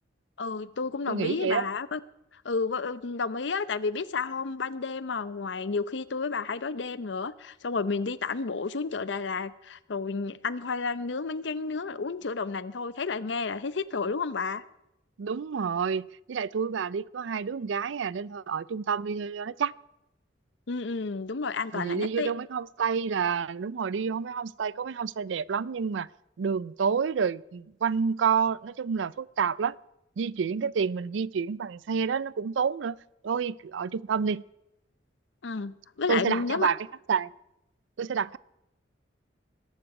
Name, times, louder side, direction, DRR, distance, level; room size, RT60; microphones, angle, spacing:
voice 1, 0.4-2.0 2.4-14.6 20.7-22.3 35.4-36.7, left 4 dB, 70° left, 0.7 m, -31 dB
voice 2, 1.1-1.7 15.2-19.7 21.7-26.1 26.4-29.8 30.2-33.0 33.2-34.4 36.1-37.3 38.0-38.4, right 6 dB, 80° right, 0.4 m, -29 dB
21.0 x 12.0 x 4.8 m
head